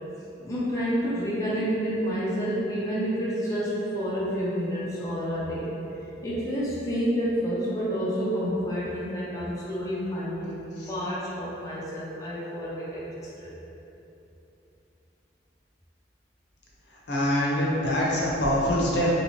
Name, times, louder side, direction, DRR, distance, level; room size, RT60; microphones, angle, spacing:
voice 1, 0.4-5.7 6.2-13.5, equal, 20° left, -8 dB, 0.4 m, -29 dB
voice 2, 17.1-19.1, equal, 75° left, -5 dB, 0.6 m, -24 dB
3.0 x 2.8 x 2.9 m, 2.9 s
head